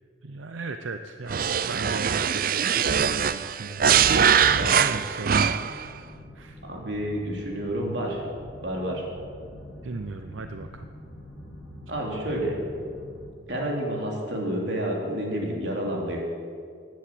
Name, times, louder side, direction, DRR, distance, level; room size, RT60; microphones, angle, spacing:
voice 1, 0.2-3.8 4.2-5.4 6.3-6.6 9.8-10.9, right 3 dB, 90° right, 7 dB, 0.7 m, -37 dB
sound 1, 1.3-5.8, right 7 dB, 50° right, 0.5 m, -22 dB
sound 2, 4.4-13.3, left 1 dB, ahead, 5.2 m, -45 dB
voice 2, 6.6-8.2 8.6-9.0 11.9-12.6 13.5-16.2, right 1 dB, 65° right, -1 dB, 3.3 m, -29 dB
15.5 x 10.5 x 7.7 m, 2.3 s
head